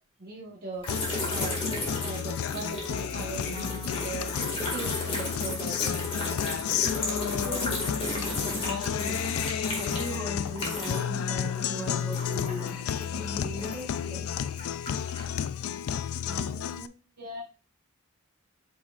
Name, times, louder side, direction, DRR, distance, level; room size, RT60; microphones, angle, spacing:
voice 1, 0.2-0.9 1.3-4.3 4.7-6.3 16.3-17.4, right 3 dB, 45° right, -2 dB, 1.3 m, -40 dB
sound 1, 0.8-11.2 11.5-14.0 14.5-15.3, left 2 dB, 25° left, 2.0 m, -34 dB
Guitar, 0.9-16.9, left 8 dB, 80° left, 0.4 m, -32 dB
voice 2, 6.8-14.3, left 1 dB, ahead, -5 dB, 2.6 m, -39 dB
8.1 x 5.2 x 2.5 m, 0.33 s
head